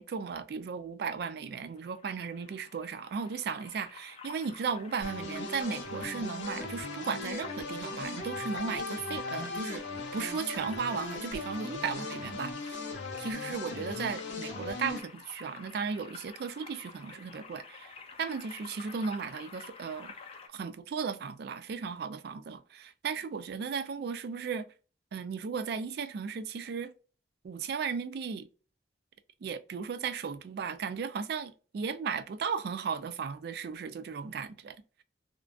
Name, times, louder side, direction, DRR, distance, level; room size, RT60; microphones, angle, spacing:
voice 1, 0.0-9.8 10.1-12.8 13.2-20.1 20.5-24.7 25.1-26.9 27.4-28.5 29.4-34.8, right 5 dB, 60° right, 0.3 m, -36 dB
sound 1, 1.6-20.5, left 5 dB, 35° left, 0.4 m, -50 dB
sound 2, 5.0-15.0, left 3 dB, 85° left, 0.7 m, -38 dB
2.5 x 2.2 x 2.3 m
head